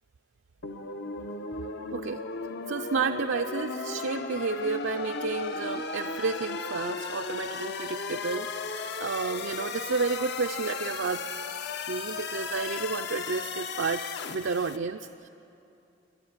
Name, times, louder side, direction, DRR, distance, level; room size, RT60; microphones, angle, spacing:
sound 1, 0.6-14.8, left 4 dB, 55° left, 0.8 m, -35 dB
voice 1, 2.7-11.3 11.9-15.3, right 4 dB, 65° right, 6 dB, 0.5 m, -31 dB
27.5 x 11.5 x 9.6 m, 2.7 s
head